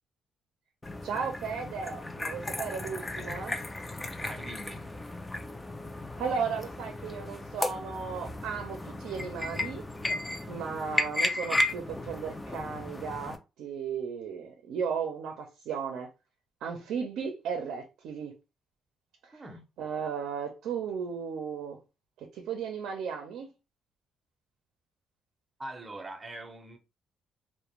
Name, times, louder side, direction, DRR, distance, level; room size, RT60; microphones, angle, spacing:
sound 1, 0.8-13.4, left 2 dB, 15° left, 0.4 m, -35 dB
voice 1, 1.0-3.6 6.2-9.9 10.5-16.1 16.6-18.3 19.2-19.4 19.8-21.8 22.2-23.5, right 6 dB, 85° right, 0.5 m, -35 dB
voice 2, 4.2-4.9 19.3-19.6 25.6-26.8, right 1 dB, 25° right, 0.6 m, -42 dB
2.4 x 2.1 x 2.9 m
cardioid pair, 90°, 0 cm